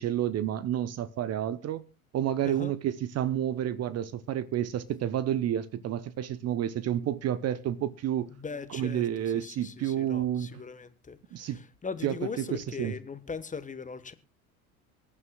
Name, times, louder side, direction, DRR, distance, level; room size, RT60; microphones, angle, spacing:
voice 1, 0.0-1.8 2.1-8.3 8.7-10.5 11.3-11.6 12.0-12.1 12.8-12.9, right 11 dB, 35° right, 0.9 m, -30 dB
voice 2, 2.4-2.7 8.3-14.1, left 5 dB, 15° left, 1.3 m, -40 dB
24.0 x 9.9 x 2.3 m
figure-of-eight pair, 70°, 43 cm